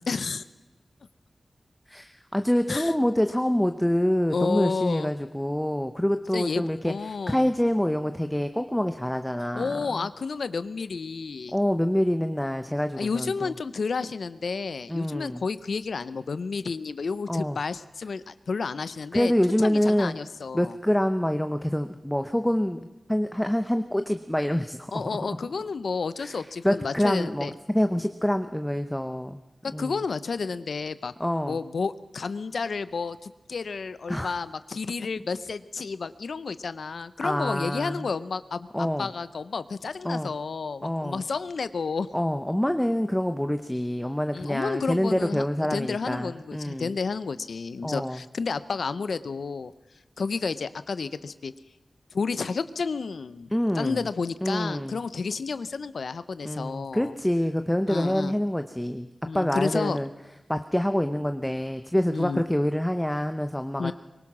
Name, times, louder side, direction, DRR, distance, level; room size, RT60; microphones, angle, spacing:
voice 1, 0.1-0.4 2.7-2.9 4.3-5.1 6.3-7.5 9.5-11.5 13.0-19.3 19.6-20.8 24.9-27.5 29.8-31.1 31.4-42.1 44.3-45.4 45.7-49.7 50.2-51.5 52.1-53.5 53.8-57.1 57.9-58.3 59.3-60.0 62.1-62.4 63.8-63.9, left 4 dB, 90° left, 14 dB, 0.7 m, -31 dB
voice 2, 1.9-10.1 11.5-13.5 14.9-15.5 17.3-17.6 19.1-20.1 20.5-22.8 23.1-25.1 26.2-29.4 29.7-30.0 31.2-31.6 34.1-34.3 37.2-38.1 38.7-39.1 40.0-40.3 40.8-41.2 42.1-46.9 47.8-48.2 53.5-54.1 54.4-55.0 56.4-59.1 59.3-60.1 60.5-63.9, equal, 5° left, 8 dB, 0.8 m, -26 dB
22.5 x 20.0 x 6.1 m, 1.1 s
wide cardioid pair, 110°, 0 cm